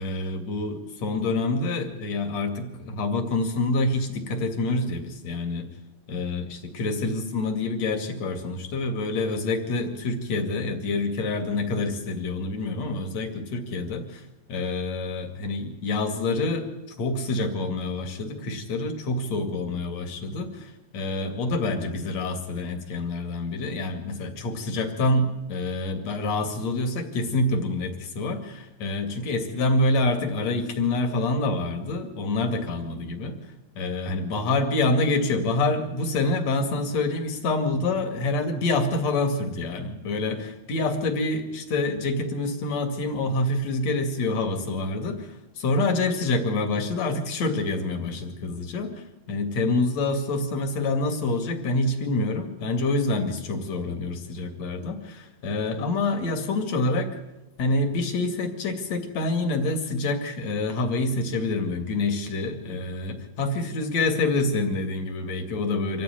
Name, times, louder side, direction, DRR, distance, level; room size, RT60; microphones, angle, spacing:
voice 1, 0.0-5.7 6.1-14.2 14.5-16.7 17.0-33.3 33.7-48.9 49.3-57.1 57.6-66.0, left 2 dB, 50° left, 6 dB, 3.4 m, -27 dB
26.0 x 15.5 x 9.3 m, 0.98 s
omnidirectional pair, 4.1 m